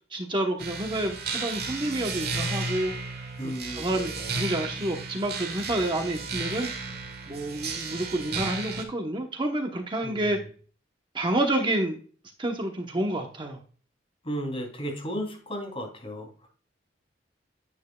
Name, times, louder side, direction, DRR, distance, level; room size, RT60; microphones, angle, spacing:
voice 1, 0.1-2.9 3.4-6.9 7.3-10.4 11.1-12.0 12.4-13.6, right 1 dB, 25° right, 3 dB, 1.0 m, -29 dB
sound 1, 0.6-8.8, right 4 dB, 60° right, 2.0 m, -34 dB
voice 2, 3.4-4.3 10.0-10.3 14.2-16.5, equal, 30° left, 1 dB, 3.1 m, -35 dB
9.7 x 9.1 x 2.3 m, 0.41 s
head